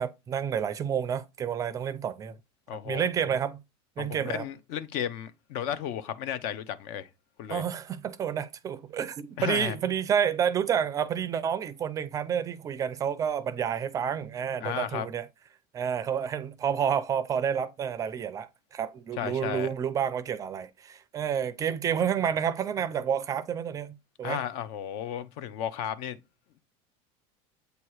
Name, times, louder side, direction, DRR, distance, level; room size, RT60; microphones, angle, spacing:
voice 1, 0.0-2.4 2.9-3.6 4.0-4.4 7.5-15.3 15.7-24.4, right 8 dB, 25° right, 0.4 m, -29 dB
voice 2, 2.7-3.4 4.0-7.1 7.4-7.6 9.4-9.8 14.6-15.1 19.2-19.7 24.2-26.2, left 10 dB, 65° left, 0.7 m, -34 dB
8.0 x 2.9 x 4.7 m
cardioid pair, 150°, 13 cm